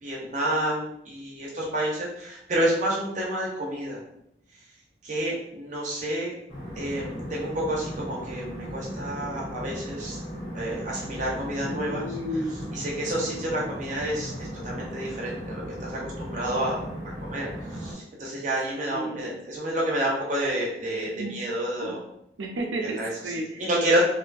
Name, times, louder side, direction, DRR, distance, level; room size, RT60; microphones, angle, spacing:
voice 1, 0.0-4.0 5.0-6.3 6.7-10.2 10.5-12.0 12.7-16.8 17.2-17.5 17.8-22.0 23.0-23.1 23.6-24.0, right 1 dB, 40° right, -3 dB, 0.7 m, -29 dB
sound 1, 6.5-17.9, equal, 30° left, 1.0 m, -37 dB
voice 2, 11.7-12.6 13.2-13.4 18.9-19.3 21.1-21.4 21.8-22.0 22.4-23.7, right 1 dB, 80° right, 2 dB, 0.5 m, -33 dB
2.6 x 2.2 x 2.5 m, 0.77 s
head